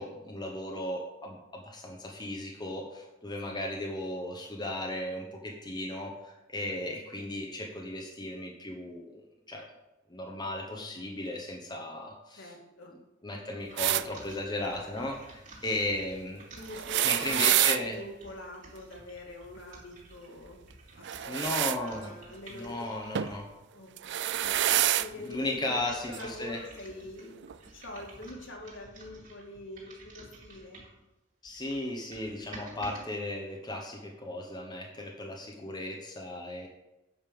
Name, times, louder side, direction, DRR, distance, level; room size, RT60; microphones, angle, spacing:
voice 1, 0.0-9.7 10.1-12.5 13.2-16.4 17.0-18.0 21.3-22.1 22.5-23.5 25.2-26.6 31.4-36.7, left 1 dB, 20° left, 1 dB, 1.1 m, -36 dB
voice 2, 12.4-13.0 16.6-20.6 21.2-21.5 21.8-22.9 23.7-24.5 25.0-27.5 27.7-30.9, left 1 dB, 65° left, 0 dB, 2.2 m, -45 dB
sound 1, 13.7-23.5 24.1-31.0 31.5-33.0, right 2 dB, 40° right, 3.2 m, -52 dB
sound 2, 13.8-14.0 16.7-17.8 21.0-21.8 23.1-23.4 24.0-25.1 26.1-26.2 27.4-27.5, right 13 dB, 60° right, 0.4 m, -27 dB
9.2 x 5.5 x 6.9 m, 1.0 s
head